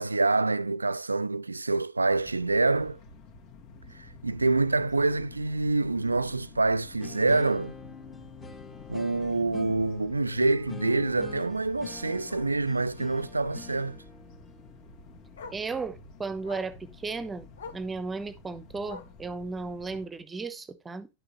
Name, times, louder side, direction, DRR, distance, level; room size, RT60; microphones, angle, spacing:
voice 1, 0.0-3.0 3.9-7.8 8.9-14.0, right 3 dB, 80° right, 0.4 m, -26 dB
sound 1, 2.1-20.1, left 3 dB, 50° left, 2.0 m, -50 dB
Bark, 5.8-6.0 6.4-6.5 6.9-7.0 7.3-7.4 8.8-8.9 11.4-11.5 12.3-12.6 13.3-13.6 14.8-14.9 15.3-15.7 16.4-16.8 17.5-17.9 18.8-19.3 20.3-20.4, left 4 dB, 65° left, 1.2 m, -45 dB
sound 2, 7.0-15.9, left 5 dB, 15° left, 1.6 m, -45 dB
voice 2, 15.5-17.5 17.7-21.1, right 4 dB, 15° right, 1.0 m, -35 dB
11.0 x 6.0 x 3.1 m
figure-of-eight pair, 90°, 0 cm